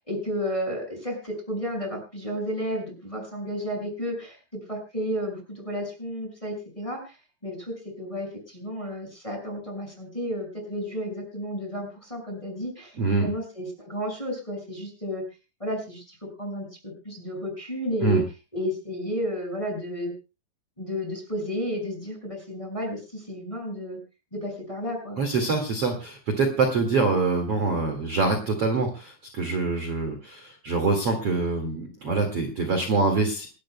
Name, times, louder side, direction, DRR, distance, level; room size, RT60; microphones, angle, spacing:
voice 1, 0.1-7.2 7.4-15.2 15.6-18.2 18.5-20.1 20.8-24.0 24.3-25.2, equal, 5° left, 2 dB, 5.4 m, -32 dB
voice 2, 13.0-13.3 18.0-18.2 25.2-33.5, right 3 dB, 45° right, 3 dB, 2.3 m, -25 dB
28.5 x 12.0 x 2.2 m, 0.30 s
omnidirectional pair, 5.1 m